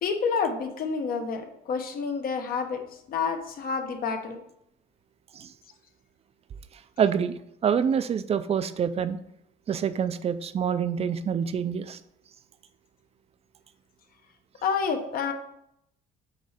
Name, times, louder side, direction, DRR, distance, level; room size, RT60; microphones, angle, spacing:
voice 1, 0.0-2.8 3.1-4.4 14.6-15.3, left 5 dB, 60° left, 5 dB, 1.1 m, -29 dB
voice 2, 7.0-9.2 9.7-12.0, right 7 dB, 35° right, 13 dB, 0.5 m, -26 dB
7.9 x 3.2 x 4.9 m, 0.75 s
cardioid pair, 110°, 17 cm